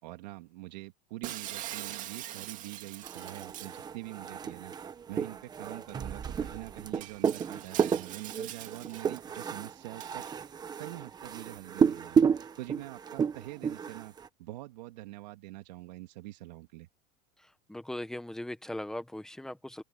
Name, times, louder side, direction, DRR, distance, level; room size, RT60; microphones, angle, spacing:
voice 1, 0.0-4.7 5.1-10.2 10.8-16.9, right 18 dB, 85° right, 2.2 m, -45 dB
Shatter, 1.2-3.8 5.6-5.7 6.2-6.3 6.9-9.2 10.0-10.3, right 13 dB, 40° right, 2.0 m, -43 dB
sound 1, 3.0-14.3, right 7 dB, 20° right, 1.1 m, -32 dB
voice 2, 17.7-19.8, left 1 dB, ahead, 1.4 m, -39 dB
open air
supercardioid pair, 155°, 21 cm